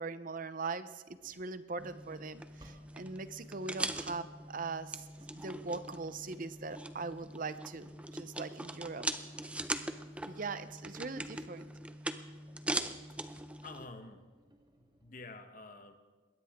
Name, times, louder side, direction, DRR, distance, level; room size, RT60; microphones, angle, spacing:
voice 1, 0.0-5.0 5.3-9.1 10.3-11.7, right 4 dB, 45° right, 13 dB, 0.7 m, -41 dB
Engine, 1.1-15.2, right 1 dB, 20° right, 1.6 m, -63 dB
sound 1, 1.8-13.9, right 1 dB, 5° right, 0.5 m, -41 dB
voice 2, 9.8-10.4 12.8-13.0 13.6-14.2 14.8-15.9, left 3 dB, 45° left, 7 dB, 1.2 m, -51 dB
21.0 x 17.5 x 3.7 m, 1.3 s
head